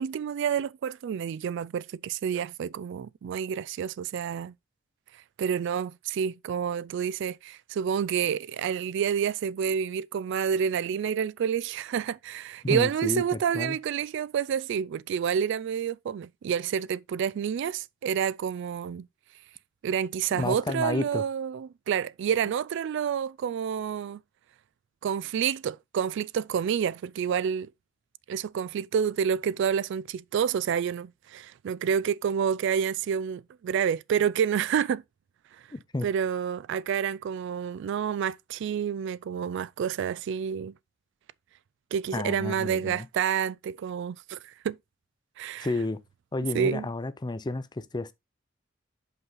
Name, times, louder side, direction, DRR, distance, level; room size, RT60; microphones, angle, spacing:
voice 1, 0.0-4.5 5.4-19.1 19.8-24.2 25.0-27.7 28.3-35.0 36.0-40.7 41.9-44.8 45.4-45.7 46.5-46.9, right 8 dB, 65° right, 0.3 m, -29 dB
voice 2, 12.6-13.8 20.3-21.2 35.7-36.1 42.1-43.1 45.6-46.0 46.3-48.1, left 2 dB, 20° left, 0.5 m, -31 dB
5.6 x 5.5 x 3.8 m
head